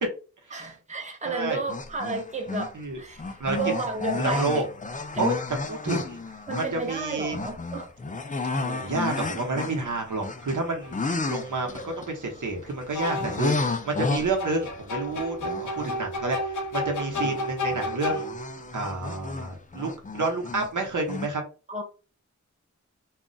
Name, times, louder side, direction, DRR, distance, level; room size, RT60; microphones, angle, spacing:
voice 1, 0.5-3.2 3.5-4.7 5.1-5.2 6.5-7.9 21.7-21.8, right 3 dB, 25° right, 0.7 m, -32 dB
voice 2, 1.2-1.6 2.7-3.0 3.4-3.6 4.2-4.6 5.2-5.3 5.7-6.2 6.6-7.4 8.5-15.4 15.8-18.4 18.7-19.9 20.1-21.4, right 3 dB, 85° right, 0.9 m, -29 dB
sound 1, 1.7-2.8 3.2-16.8 17.1-20.7 21.1-21.3, left 3 dB, 25° left, 0.4 m, -33 dB
sound 2, 10.8-11.0 12.9-13.5 14.4-18.6, left 1 dB, 85° left, 0.5 m, -31 dB
2.3 x 2.1 x 3.8 m
wide cardioid pair, 80°, 30 cm